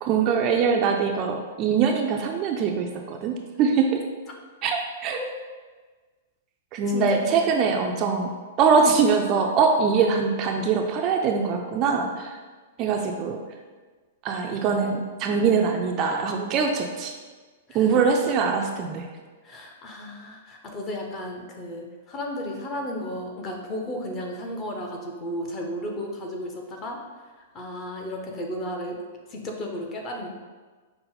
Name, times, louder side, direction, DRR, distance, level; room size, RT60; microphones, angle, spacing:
voice 1, 0.0-4.0 4.6-5.2 6.7-8.3 8.6-12.4 12.8-13.4 14.2-17.1 17.7-19.0, right 5 dB, 30° right, 2 dB, 0.3 m, -23 dB
voice 2, 6.9-7.4 17.7-17.9 19.4-27.0 27.5-29.0 29.3-30.3, left 1 dB, 25° left, 1 dB, 0.6 m, -34 dB
5.5 x 2.0 x 3.9 m, 1.4 s
hypercardioid pair, 155°, 0 cm